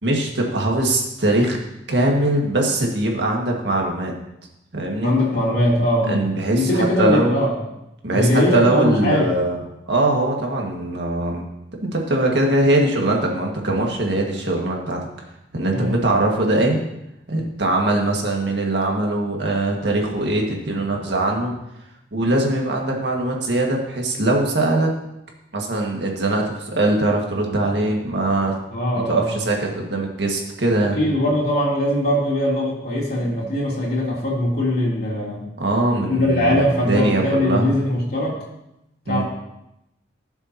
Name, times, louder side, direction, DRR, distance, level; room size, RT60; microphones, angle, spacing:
voice 1, 0.0-1.6 1.9-4.2 4.7-5.2 6.1-7.4 8.0-9.6 9.9-11.4 11.8-15.0 15.5-16.8 17.3-21.6 22.1-24.9 25.5-28.5 29.1-31.0 35.6-37.7 39.1-39.2, right 1 dB, 65° right, 0 dB, 1.9 m, -21 dB
voice 2, 5.0-6.2 6.5-7.5 8.1-9.3 15.7-16.0 28.7-29.4 31.0-35.4 36.1-38.4 39.1-39.2, left 1 dB, 55° left, -5 dB, 3.3 m, -21 dB
17.0 x 6.9 x 2.9 m, 0.87 s
head